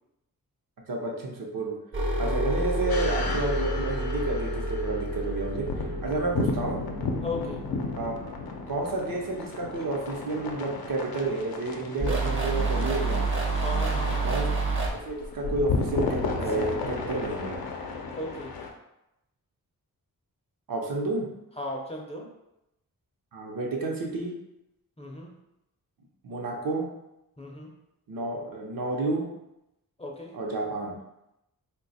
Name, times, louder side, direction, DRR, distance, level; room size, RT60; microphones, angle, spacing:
voice 1, 0.9-1.7 2.2-5.7 6.0-6.8 7.9-8.4 8.7-13.3 14.2-14.5 14.9-17.6 20.7-21.3 23.3-24.3 26.2-26.9 28.1-29.2 30.3-30.9, right 2 dB, 70° right, -1 dB, 0.7 m, -30 dB
sound 1, 1.9-8.4 12.0-14.9, right 2 dB, 35° right, 0.6 m, -29 dB
sound 2, 2.9-18.7, left 4 dB, 85° left, 0.5 m, -34 dB
voice 2, 7.2-7.6 13.6-14.4 16.5-16.6 18.1-18.6 21.6-22.3 25.0-25.3 27.4-27.7 30.0-30.4, left 2 dB, 20° left, -1 dB, 0.5 m, -36 dB
2.8 x 2.2 x 4.0 m, 0.88 s
wide cardioid pair, 110°, 35 cm